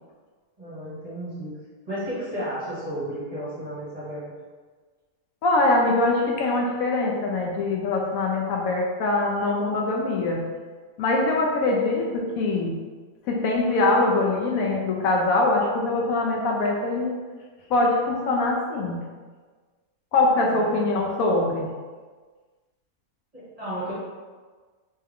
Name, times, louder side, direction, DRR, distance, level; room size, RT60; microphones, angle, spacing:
voice 1, 0.6-1.5 1.8-4.3 20.4-20.8 23.3-23.9, equal, 25° right, -10 dB, 1.3 m, -33 dB
voice 2, 5.4-10.4 11.0-12.7 13.3-17.2 17.7-19.0 20.1-21.6, left 2 dB, 75° left, -1 dB, 1.0 m, -23 dB
3.4 x 3.2 x 3.4 m, 1.4 s
omnidirectional pair, 1.6 m